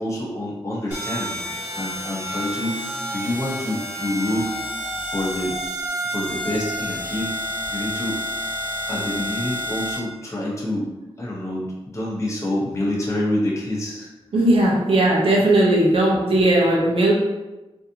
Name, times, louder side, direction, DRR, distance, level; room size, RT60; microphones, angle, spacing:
voice 1, 0.0-1.5 1.7-4.5 5.1-5.5 6.0-7.3 7.7-8.2 8.9-10.9 11.2-11.7 11.9-14.1, left 1 dB, 30° left, -5 dB, 0.9 m, -27 dB
sound 1, 0.9-10.0, equal, 20° right, 0.8 m, -29 dB
voice 2, 14.3-17.1, right 1 dB, 60° right, -3 dB, 0.7 m, -17 dB
4.0 x 2.6 x 2.8 m, 1.1 s
wide cardioid pair, 150°, 10 cm